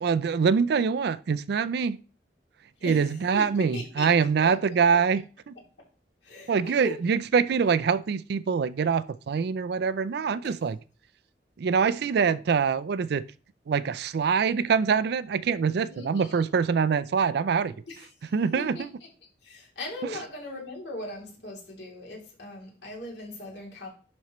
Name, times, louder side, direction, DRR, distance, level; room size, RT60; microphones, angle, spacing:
voice 1, 0.0-2.0 2.8-5.5 6.5-10.8 11.6-13.2 13.7-17.7 18.3-18.9, right 6 dB, 65° right, 0.4 m, -24 dB
voice 2, 2.8-4.1 4.4-4.5 6.2-7.0 10.4-10.6 15.9-16.5 17.9-18.8 19.4-23.9, left 2 dB, 70° left, 2.9 m, -39 dB
10.5 x 4.3 x 3.0 m
head